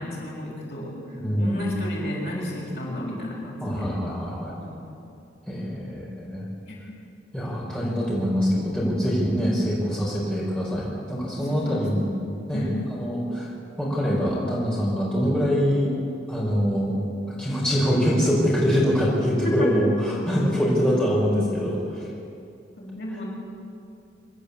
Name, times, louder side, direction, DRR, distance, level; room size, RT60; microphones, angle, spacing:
voice 1, 0.0-1.0 1.4-3.9 4.6-4.9 6.7-6.8 11.5-12.1 12.5-12.8 19.6-19.8 22.8-23.3, left 1 dB, 60° left, -4 dB, 6.5 m, -32 dB
voice 2, 1.1-1.7 3.6-4.5 5.5-6.4 7.3-12.1 12.5-13.5 13.8-15.9 16.3-16.9 17.3-22.1, equal, 5° left, -6 dB, 4.5 m, -24 dB
25.5 x 13.0 x 8.5 m, 2.6 s
head